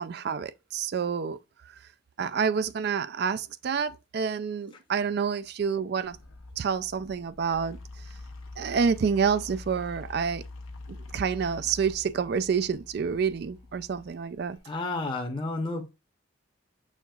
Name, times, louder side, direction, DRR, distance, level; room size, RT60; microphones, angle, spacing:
voice 1, 0.0-1.4 2.2-6.2 6.6-7.8 8.6-10.4 10.9-14.6, right 6 dB, 50° right, 0.3 m, -28 dB
sound 1, 6.1-14.6, left 2 dB, 85° left, 1.0 m, -45 dB
voice 2, 14.7-15.9, left 2 dB, 25° left, 0.7 m, -31 dB
6.4 x 3.5 x 2.3 m
head